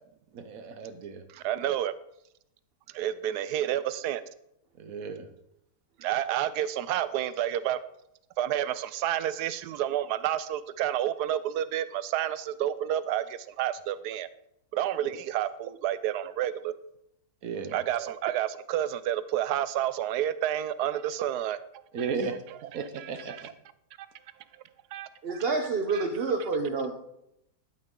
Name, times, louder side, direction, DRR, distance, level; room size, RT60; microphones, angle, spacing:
voice 1, 0.3-1.2 4.8-5.3 17.4-17.8 21.9-22.4 22.7-23.5, right 5 dB, 65° right, 9 dB, 1.3 m, -34 dB
voice 2, 1.3-1.9 2.9-4.2 6.0-7.8 8.4-14.3 14.7-16.7 17.7-21.6 22.0-22.1 23.0-23.4 24.9-25.1 25.9-26.0, right 11 dB, 90° right, 15 dB, 1.2 m, -30 dB
voice 3, 25.2-26.9, right 4 dB, 45° right, 5 dB, 0.9 m, -28 dB
11.0 x 9.4 x 3.8 m, 0.77 s
omnidirectional pair, 1.7 m